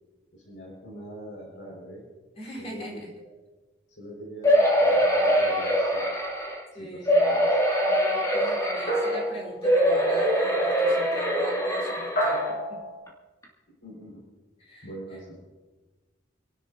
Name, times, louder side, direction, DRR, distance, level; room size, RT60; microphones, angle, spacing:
voice 1, 0.3-2.0 2.6-3.3 4.0-6.1 6.7-7.6 8.3-8.6 13.8-14.2 14.8-15.4, right 1 dB, 85° left, -6 dB, 5.9 m, -43 dB
voice 2, 2.3-3.1 6.7-7.2 7.9-12.8 14.6-14.9, right 1 dB, 35° left, -3 dB, 4.6 m, -39 dB
sound 1, 4.4-6.6 7.1-9.2 9.6-12.5 13.1-13.2 13.4-13.5, equal, 20° left, 2.9 m, -23 dB
sound 2, 8.9-9.9 12.2-13.0, equal, 50° left, 6.7 m, -28 dB
29.5 x 12.5 x 2.8 m, 1.2 s
head